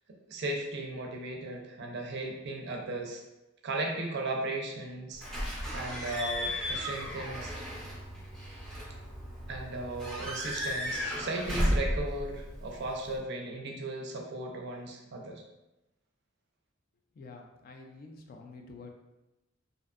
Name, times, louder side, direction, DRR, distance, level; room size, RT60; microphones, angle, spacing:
voice 1, 0.3-3.2 3.6-5.2 5.7-7.7 9.5-15.4, right 2 dB, 60° right, 1 dB, 0.4 m, -36 dB
Slam / Squeak / Alarm, 5.2-13.2, equal, 5° left, 0.6 m, -34 dB
voice 2, 17.1-18.9, left 3 dB, 45° left, 2 dB, 0.3 m, -48 dB
2.6 x 2.1 x 2.4 m, 0.96 s
head